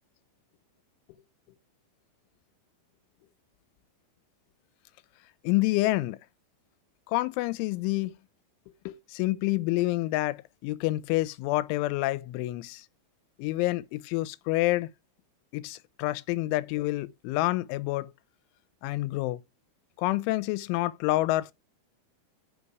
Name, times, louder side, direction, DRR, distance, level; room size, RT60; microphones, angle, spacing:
voice 1, 5.4-6.2 7.1-8.1 8.9-12.9 13.4-14.9 15.5-18.1 18.8-19.4 20.0-21.5, left 18 dB, 85° left, 3.1 m, -28 dB
8.6 x 5.4 x 4.6 m
omnidirectional pair, 5.4 m